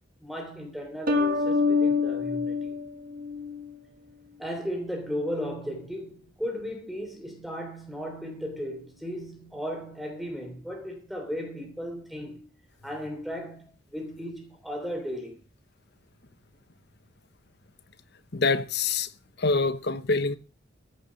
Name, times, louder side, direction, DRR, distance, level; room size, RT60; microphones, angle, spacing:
voice 1, 0.2-2.7 4.4-12.5 12.8-15.3, equal, ahead, 3.2 m, -35 dB
sound 1, 1.1-3.7, left 4 dB, 45° right, 1.7 m, -26 dB
voice 2, 18.3-19.1 19.4-20.4, left 3 dB, 55° left, 0.9 m, -25 dB
15.0 x 7.0 x 6.4 m
head